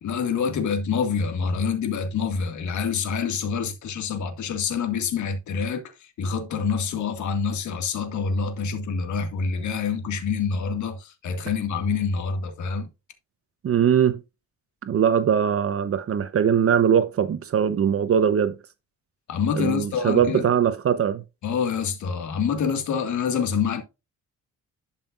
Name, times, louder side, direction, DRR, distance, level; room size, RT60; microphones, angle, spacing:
voice 1, 0.0-12.9 19.3-20.5 21.4-23.8, left 6 dB, 70° left, 2.0 m, -26 dB
voice 2, 13.6-14.2 14.8-18.6 19.6-21.2, right 8 dB, 50° right, 0.9 m, -21 dB
12.0 x 5.6 x 2.5 m
cardioid pair, 90°, 30 cm